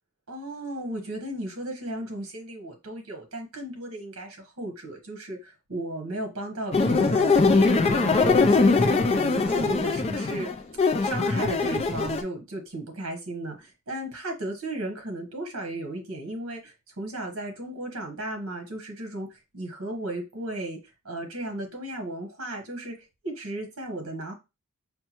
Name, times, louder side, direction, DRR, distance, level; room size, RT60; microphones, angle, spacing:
voice 1, 0.3-10.5 11.0-20.8 21.0-23.0 23.2-24.3, right 1 dB, 65° right, 1.0 m, -35 dB
sound 1, 6.7-12.2, left 3 dB, 30° left, 0.4 m, -21 dB
5.5 x 2.2 x 2.9 m
head